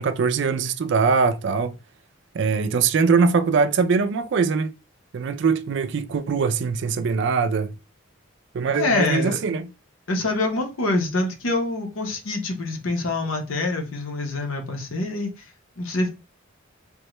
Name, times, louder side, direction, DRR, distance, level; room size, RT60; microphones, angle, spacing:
voice 1, 0.0-1.7 2.3-4.7 5.1-7.7 8.5-9.7, right 5 dB, 60° right, 0.3 m, -22 dB
voice 2, 8.7-9.4 10.1-15.3 15.8-16.1, left 2 dB, 75° left, 0.8 m, -25 dB
3.6 x 2.2 x 2.9 m
head